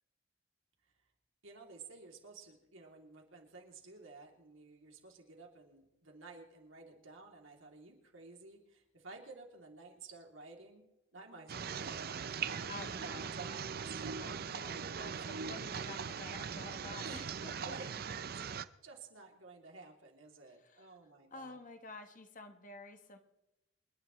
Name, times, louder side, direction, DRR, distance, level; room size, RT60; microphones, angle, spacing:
voice 1, 1.4-10.9 11.1-12.7 13.0-14.3 15.1-15.2 17.0-17.9 18.1-18.3 18.8-21.6, right 3 dB, 80° right, 1 dB, 3.0 m, -53 dB
voice 2, 11.5-12.1 12.7-13.3 14.2-17.5 20.6-20.9 21.3-23.2, left 3 dB, 40° left, 6 dB, 1.3 m, -50 dB
sound 1, 11.5-18.6, right 6 dB, 50° right, 0.5 m, -40 dB
28.0 x 10.5 x 3.2 m, 0.97 s
head